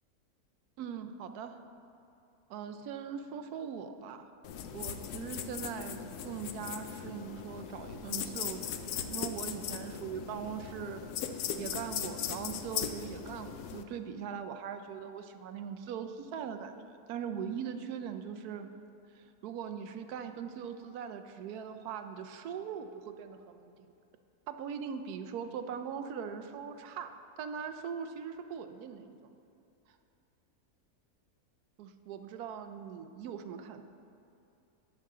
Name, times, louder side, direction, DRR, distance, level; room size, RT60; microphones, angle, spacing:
voice 1, 0.8-1.6 2.5-4.3 4.7-11.0 11.6-18.7 19.1-23.9 24.5-29.3 31.8-33.8, right 7 dB, 85° right, 8 dB, 1.1 m, -41 dB
sound 1, 4.4-13.8, left 8 dB, 90° left, 1.1 m, -39 dB
11.5 x 8.6 x 3.7 m, 2.7 s
omnidirectional pair, 1.6 m